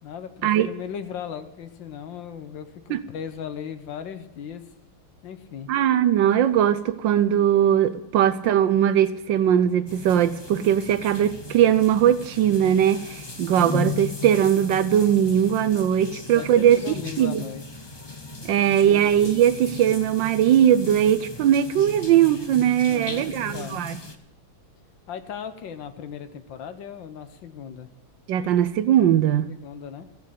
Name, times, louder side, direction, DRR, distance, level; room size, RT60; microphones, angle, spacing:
voice 1, 0.0-4.6 5.2-5.7 16.3-17.6 18.5-19.1 22.9-23.8 25.1-27.9 29.5-30.1, left 8 dB, 65° left, 1.6 m, -37 dB
voice 2, 5.7-17.4 18.4-24.0 28.3-29.6, right 10 dB, 70° right, 1.2 m, -20 dB
sound 1, 9.9-24.1, left 3 dB, 45° left, 0.3 m, -37 dB
14.5 x 8.1 x 8.4 m
omnidirectional pair, 2.3 m